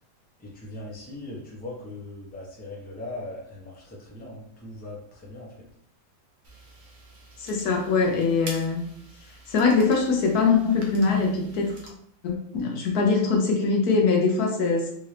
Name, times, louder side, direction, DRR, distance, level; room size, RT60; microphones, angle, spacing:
voice 1, 0.4-5.7, left 2 dB, 10° left, -4 dB, 0.7 m, -39 dB
sound 1, 6.4-11.9, right 2 dB, 55° right, 0.7 m, -46 dB
voice 2, 7.4-8.8 9.5-11.8 12.2-14.9, left 4 dB, 70° left, 2 dB, 1.1 m, -22 dB
3.7 x 2.7 x 3.2 m, 0.67 s
omnidirectional pair, 1.8 m